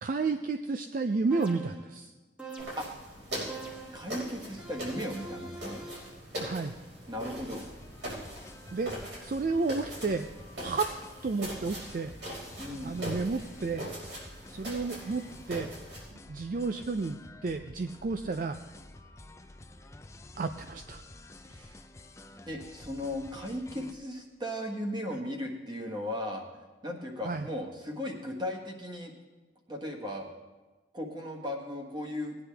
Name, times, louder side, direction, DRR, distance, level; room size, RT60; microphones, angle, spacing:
voice 1, 0.0-2.1 6.4-6.7 8.7-9.0 9.2-10.3 10.6-10.9 11.2-12.1 12.8-13.9 14.5-15.2 15.5-15.7 16.3-18.6 20.4-21.0 27.2-27.5, right 4 dB, 45° right, 8 dB, 0.4 m, -31 dB
sound 1, 1.3-1.9 2.4-3.0 3.5-4.1 4.6-6.2, right 3 dB, 5° right, 1.4 m, -44 dB
sound 2, 2.6-16.1, equal, 70° right, 5.1 m, -41 dB
voice 2, 3.9-5.8 7.1-7.6 12.6-13.0 21.4-21.8 22.5-26.4 26.8-29.1 29.7-30.3 30.9-32.4, left 1 dB, 25° right, 1 dB, 1.5 m, -36 dB
sound 3, 7.2-23.9, left 1 dB, 15° left, 0.5 m, -50 dB
19.0 x 9.8 x 3.4 m, 1.2 s
head